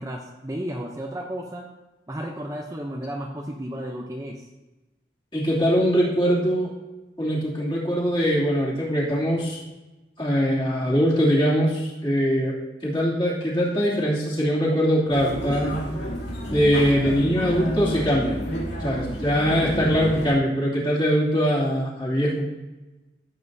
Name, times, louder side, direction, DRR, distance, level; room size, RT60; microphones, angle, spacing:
voice 1, 0.0-1.7 2.1-4.5, equal, 15° right, 1 dB, 0.6 m, -33 dB
voice 2, 5.3-6.7 7.2-9.6 10.2-12.5 12.8-15.8 16.5-18.4 18.8-22.5, equal, 25° left, -7 dB, 2.7 m, -22 dB
sound 1, 15.1-20.3, equal, 85° left, 2.4 m, -29 dB
14.5 x 7.6 x 2.7 m, 1.1 s
head